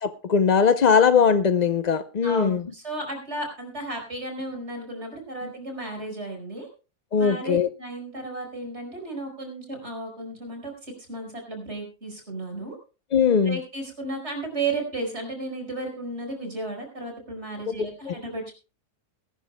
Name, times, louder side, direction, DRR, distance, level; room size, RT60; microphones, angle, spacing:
voice 1, 0.0-2.6 5.4-5.5 7.1-7.7 13.1-13.6 17.8-18.2, left 6 dB, 60° left, 0.4 m, -20 dB
voice 2, 2.2-6.7 7.2-12.8 13.5-18.5, right 2 dB, 45° right, 5.3 m, -34 dB
21.5 x 13.0 x 2.2 m
omnidirectional pair, 1.6 m